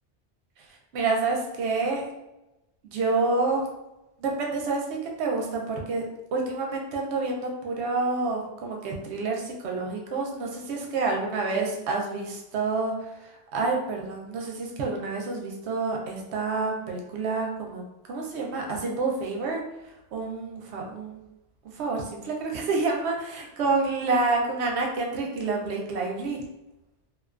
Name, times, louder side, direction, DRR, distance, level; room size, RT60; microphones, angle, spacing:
voice 1, 0.9-2.0 2.8-3.6 4.2-6.0 6.3-12.9 13.5-17.8 18.1-19.6 20.1-21.2 21.8-26.4, right 3 dB, 75° right, 0 dB, 0.8 m, -28 dB
2.4 x 2.2 x 2.3 m, 0.95 s
omnidirectional pair, 1.2 m